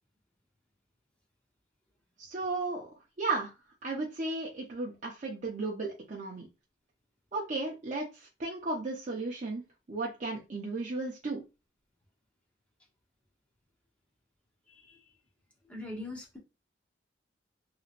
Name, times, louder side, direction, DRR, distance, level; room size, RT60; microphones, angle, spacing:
voice 1, 2.2-2.9 3.2-3.5 3.8-6.5 7.3-9.6 9.9-11.4, right 3 dB, 45° right, -2 dB, 0.6 m, -34 dB
voice 2, 14.7-15.0 15.6-16.4, left 2 dB, 5° left, -2 dB, 0.9 m, -42 dB
3.0 x 2.9 x 2.4 m, 0.27 s
head